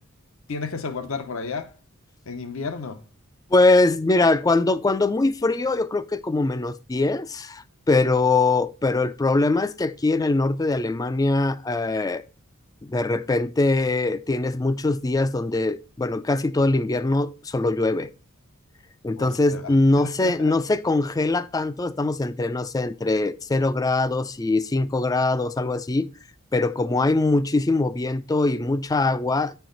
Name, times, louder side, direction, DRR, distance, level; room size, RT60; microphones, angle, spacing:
voice 1, 0.5-1.7 2.3-3.0 19.2-19.6 20.0-20.5, left 4 dB, 70° left, 0.8 m, -32 dB
voice 2, 3.5-12.2 12.9-18.1 19.0-26.1 26.5-29.5, left 2 dB, 15° left, 0.3 m, -22 dB
9.3 x 4.6 x 3.8 m
head